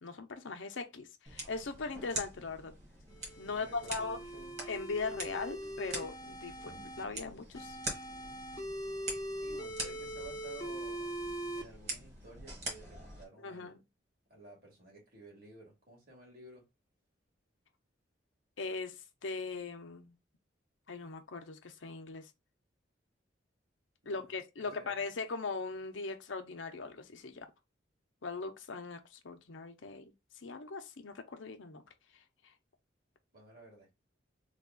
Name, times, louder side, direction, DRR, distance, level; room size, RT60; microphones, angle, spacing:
voice 1, 0.0-2.7 3.4-4.2 4.7-7.8 13.4-13.8 18.6-20.2 20.9-22.3 24.1-27.5 28.2-30.1 30.4-31.8 32.4-32.5, left 4 dB, 90° left, 0.7 m, -40 dB
sound 1, 1.3-13.3, right 1 dB, 35° right, 1.4 m, -45 dB
sound 2, 3.1-7.0 7.5-11.6, right 1 dB, 20° left, 0.5 m, -42 dB
voice 2, 3.5-4.6 9.4-11.1 11.5-13.8 14.3-16.6 24.0-24.2 24.6-25.1 33.3-33.9, right 2 dB, 50° right, 1.9 m, -53 dB
3.4 x 2.4 x 3.7 m
head